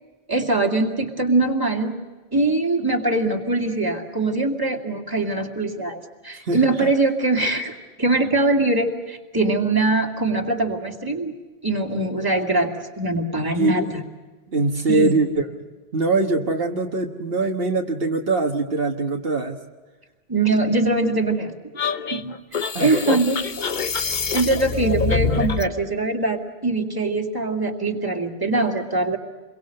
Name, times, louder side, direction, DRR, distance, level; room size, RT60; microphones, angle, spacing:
voice 1, 0.3-1.9 2.3-11.3 11.6-13.8 14.9-15.2 20.3-21.5 22.1-22.3 22.8-23.4 24.3-29.2, right 2 dB, 20° right, 1 dB, 2.4 m, -22 dB
voice 2, 6.3-6.9 13.5-14.0 14.5-19.6 22.7-23.2, right 3 dB, 70° right, 3 dB, 1.6 m, -23 dB
sound 1, 21.8-25.7, left 5 dB, 50° left, 1.1 m, -25 dB
28.5 x 23.0 x 6.6 m, 1.3 s
omnidirectional pair, 1.0 m